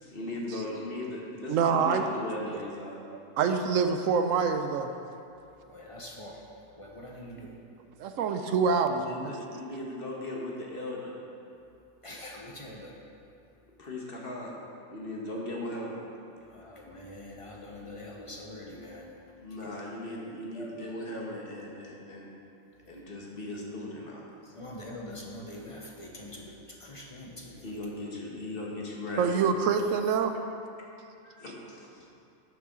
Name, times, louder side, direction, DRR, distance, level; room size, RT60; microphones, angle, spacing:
voice 1, 0.0-3.0 8.9-11.1 13.8-14.5 14.9-15.9 19.4-22.3 22.9-24.2 27.6-29.2 31.2-32.1, left 2 dB, 45° left, -3 dB, 1.5 m, -38 dB
voice 2, 1.5-2.0 3.4-4.9 7.4-7.5 8.0-9.3 29.2-30.3, right 6 dB, 85° right, 7 dB, 1.0 m, -26 dB
voice 3, 5.7-6.4 6.8-7.5 12.0-12.9 16.4-19.1 19.6-19.7 20.5-20.7 24.4-27.8, left 1 dB, 30° left, -2 dB, 0.9 m, -44 dB
11.0 x 6.8 x 3.8 m, 2.6 s
omnidirectional pair, 1.3 m